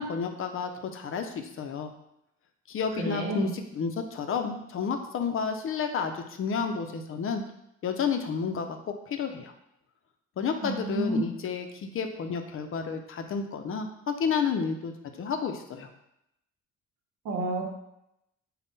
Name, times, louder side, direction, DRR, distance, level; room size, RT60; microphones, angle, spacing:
voice 1, 0.0-1.9 2.7-7.4 7.8-9.5 10.4-14.9 15.2-15.9, left 6 dB, 45° left, 6 dB, 0.5 m, -31 dB
voice 2, 3.0-3.5 10.6-11.2 17.3-17.6, right 2 dB, 90° right, 1 dB, 0.8 m, -29 dB
3.5 x 2.1 x 3.9 m, 0.81 s
cardioid pair, 90°, 30 cm